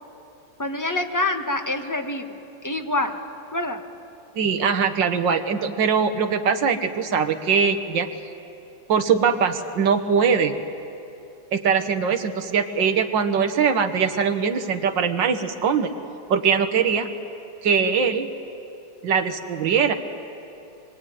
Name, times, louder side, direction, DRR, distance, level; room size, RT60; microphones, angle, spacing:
voice 1, 0.6-2.3 2.6-3.1 3.5-3.8, left 2 dB, 10° left, 5 dB, 1.1 m, -26 dB
voice 2, 4.4-8.1 8.9-10.6 11.5-15.9 16.3-17.1 17.6-18.3 19.0-19.9, right 6 dB, 70° right, 6 dB, 2.0 m, -21 dB
24.0 x 23.0 x 9.4 m, 2.7 s
omnidirectional pair, 2.1 m